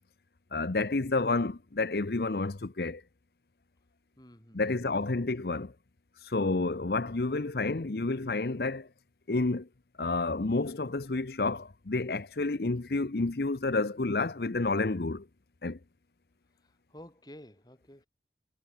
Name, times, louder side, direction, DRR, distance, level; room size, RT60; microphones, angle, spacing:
voice 1, 0.5-3.0 4.5-5.7 6.2-8.9 9.3-9.7 10.0-15.3 15.6-15.8, left 3 dB, 60° left, 0.8 m, -30 dB
voice 2, 4.2-5.0 16.6-18.1, equal, 25° left, 4.6 m, -52 dB
head